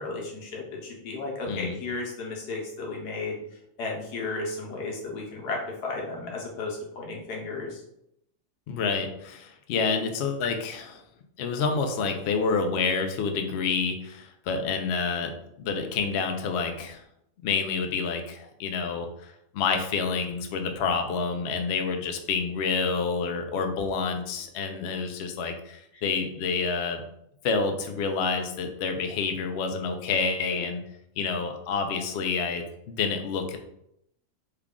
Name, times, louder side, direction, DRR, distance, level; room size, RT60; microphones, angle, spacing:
voice 1, 0.0-3.4 3.8-7.8 25.9-26.0, left 3 dB, 90° left, -1 dB, 1.4 m, -34 dB
voice 2, 1.5-1.8 8.7-11.0 11.4-17.0 17.4-27.0 27.4-30.8 31.2-33.6, left 5 dB, 75° left, 5 dB, 0.6 m, -28 dB
3.4 x 2.3 x 3.6 m, 0.76 s
omnidirectional pair, 1.6 m